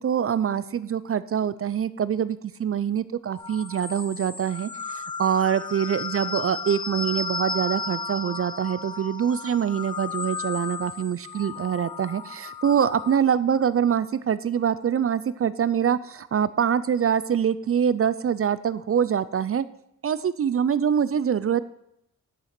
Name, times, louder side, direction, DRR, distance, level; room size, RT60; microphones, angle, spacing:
voice 1, 0.0-19.6 20.0-21.6, right 8 dB, 45° right, 16 dB, 0.4 m, -24 dB
sound 1, 3.4-13.2, left 4 dB, 15° left, 0.4 m, -34 dB
10.0 x 6.4 x 5.9 m, 0.77 s
wide cardioid pair, 170°, 31 cm